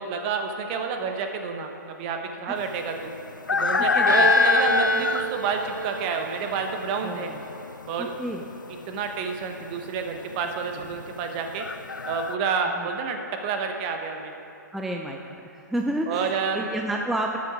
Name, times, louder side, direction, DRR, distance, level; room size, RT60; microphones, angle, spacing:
voice 1, 0.0-3.1 3.5-7.3 7.9-8.1 8.9-11.6 12.1-14.3 16.1-16.7, right 5 dB, 35° right, 5 dB, 1.0 m, -29 dB
sound 1, 2.6-12.4, left 5 dB, 85° left, 0.4 m, -25 dB
voice 2, 3.9-4.3 7.0-7.4 8.0-8.4 10.4-10.5 12.8-12.9 14.7-17.4, right 1 dB, ahead, 1 dB, 0.4 m, -30 dB
Bowed string instrument, 4.1-7.6, right 5 dB, 75° right, 0.6 m, -30 dB
12.5 x 7.4 x 5.0 m, 2.9 s
figure-of-eight pair, 125°, 10 cm